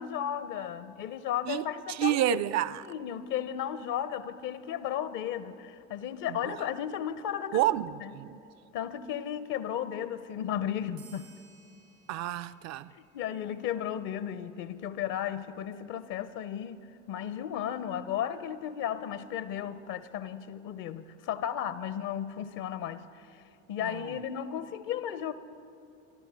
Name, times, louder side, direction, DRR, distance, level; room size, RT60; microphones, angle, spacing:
voice 1, 0.0-2.4 2.9-7.6 8.0-8.1 8.7-11.3 12.9-23.4 23.7-25.3, left 10 dB, 55° left, 0.7 m, -34 dB
voice 2, 1.5-2.8 6.3-6.6 7.5-8.4 12.1-12.9 23.8-24.2, right 13 dB, 45° right, 0.5 m, -30 dB
sound 1, 11.0-14.0, right 5 dB, 85° right, 3.1 m, -60 dB
24.0 x 12.0 x 3.4 m
figure-of-eight pair, 55°, 39 cm